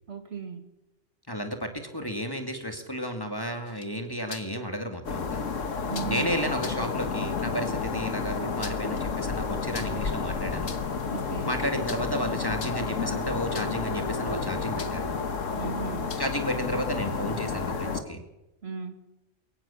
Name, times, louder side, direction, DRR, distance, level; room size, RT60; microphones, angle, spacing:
voice 1, 0.1-0.7 5.9-6.3 11.1-11.5 15.5-16.2 18.6-19.0, right 6 dB, 55° right, 8 dB, 2.0 m, -36 dB
voice 2, 1.3-5.4 6.0-10.8 11.4-15.2 16.2-18.2, equal, 20° left, 5 dB, 2.2 m, -32 dB
sound 1, 3.7-4.6 5.9-6.2 6.6-6.9 8.4-9.0 9.7-10.1 10.5-11.0 11.9-12.2 12.5-13.0 13.5-13.9 14.8-15.1 16.1-16.4, left 5 dB, 65° left, 1.6 m, -42 dB
sound 2, 5.0-18.0, left 5 dB, 80° left, 1.8 m, -31 dB
sound 3, 9.3-17.0, right 4 dB, 90° right, 7.4 m, -48 dB
23.0 x 18.5 x 7.1 m, 0.98 s
omnidirectional pair, 1.3 m